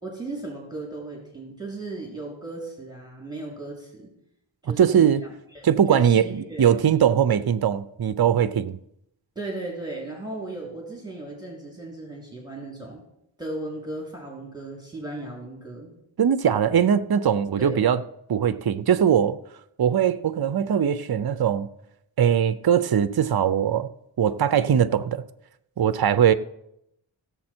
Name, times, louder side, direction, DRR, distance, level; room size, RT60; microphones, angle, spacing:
voice 1, 0.0-4.0 4.6-5.1 5.5-6.7 9.3-13.0 13.4-15.9 17.6-17.8, right 2 dB, 10° right, 3.2 m, -36 dB
voice 2, 4.6-5.2 5.6-8.8 16.2-18.0 18.3-19.4 19.8-21.7 22.2-23.9 24.2-25.2 25.8-26.3, right 8 dB, 50° right, 0.6 m, -21 dB
16.5 x 7.1 x 4.4 m
wide cardioid pair, 45°, 48 cm